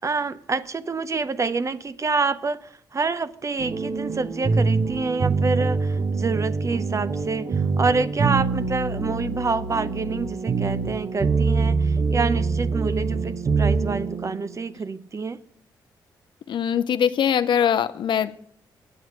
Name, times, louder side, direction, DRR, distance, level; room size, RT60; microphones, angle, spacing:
voice 1, 0.0-15.4, right 4 dB, 35° right, 0.6 m, -27 dB
sound 1, 3.6-14.6, right 4 dB, 55° right, 1.0 m, -24 dB
voice 2, 16.5-18.4, left 8 dB, 70° left, 0.5 m, -22 dB
9.0 x 8.0 x 6.2 m
supercardioid pair, 55°, 8 cm